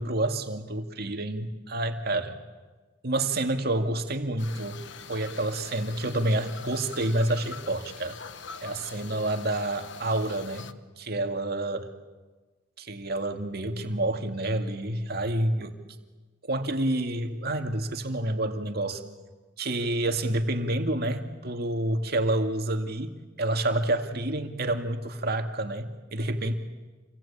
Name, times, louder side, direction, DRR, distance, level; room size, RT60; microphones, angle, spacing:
voice 1, 0.0-2.4 3.0-4.8 5.1-8.2 8.6-11.9 12.8-15.8 16.4-19.0 19.6-26.6, right 1 dB, 55° right, 6 dB, 2.3 m, -28 dB
sound 1, 4.4-10.7, left 6 dB, 70° left, 1.2 m, -44 dB
28.5 x 23.0 x 8.8 m, 1.3 s
head